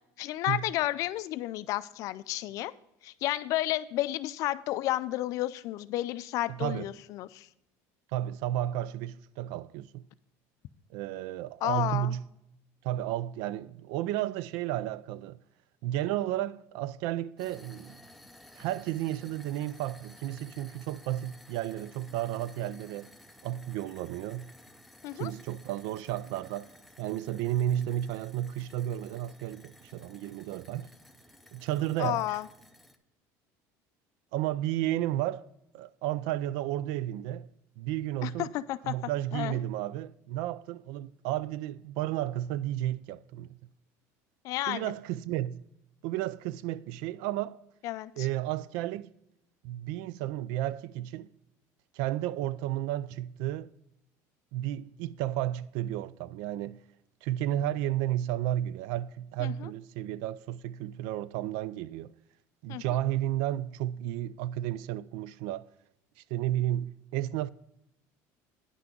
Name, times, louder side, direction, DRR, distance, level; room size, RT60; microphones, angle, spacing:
voice 1, 0.2-2.7 3.0-7.5 11.6-12.1 25.0-25.3 32.0-32.5 38.2-38.9 39.3-39.6 44.4-44.9 47.8-48.3 59.4-59.7 62.7-62.8, left 15 dB, 50° left, 0.4 m, -32 dB
voice 2, 6.5-6.9 8.1-10.1 10.9-12.3 12.8-15.4 15.8-18.0 18.6-23.1 23.4-24.5 25.2-26.7 27.0-30.9 31.5-32.3 34.3-35.5 35.7-37.5 37.8-38.5 38.8-43.6 44.7-45.7 46.0-47.6 48.2-49.1 49.6-51.3 51.9-53.7 54.5-56.8 57.2-62.1 62.6-65.7 66.3-67.5, right 13 dB, 75° right, 0.4 m, -32 dB
sound 1, 17.4-33.0, left 1 dB, ahead, 0.6 m, -55 dB
9.8 x 5.9 x 5.2 m
cardioid pair, 160°, 7 cm